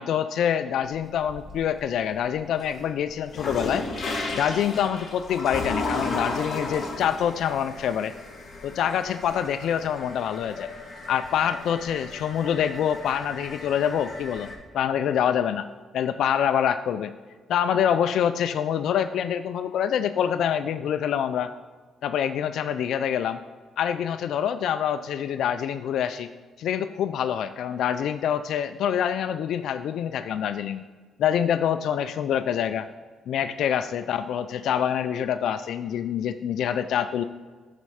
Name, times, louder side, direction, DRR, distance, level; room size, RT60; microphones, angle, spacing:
voice 1, 0.0-3.9 4.3-8.1 8.6-10.7 11.1-14.5 14.7-15.7 15.9-17.1 17.5-21.5 22.0-23.4 23.8-26.3 26.6-30.8 31.2-32.8 33.3-37.2, left 9 dB, 75° left, 10 dB, 0.3 m, -26 dB
sound 1, 0.8-1.8 2.2-14.5, left 2 dB, 40° left, 1.9 m, -35 dB
12.5 x 4.2 x 4.9 m, 1.4 s
cardioid pair, 90°, 0 cm